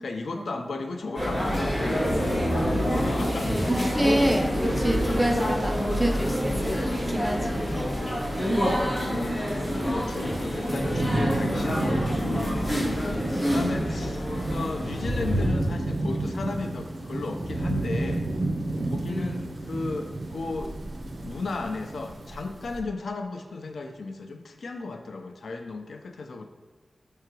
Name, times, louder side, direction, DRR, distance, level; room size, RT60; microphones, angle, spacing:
voice 1, 0.0-2.4 2.7-3.5 8.5-18.3 18.9-20.8 21.0-26.4, left 3 dB, 85° left, 5 dB, 0.5 m, -35 dB
sound 1, 1.1-15.5, equal, 30° left, 1.9 m, -27 dB
voice 2, 3.1-7.9 8.4-8.7 19.0-19.5, right 1 dB, ahead, 2 dB, 0.7 m, -29 dB
Thunderstorm / Rain, 10.3-22.5, right 2 dB, 65° right, 0.6 m, -32 dB
sound 2, 14.8-22.8, equal, 30° right, 1.1 m, -35 dB
5.7 x 3.9 x 4.6 m, 1.4 s
wide cardioid pair, 120°, 0 cm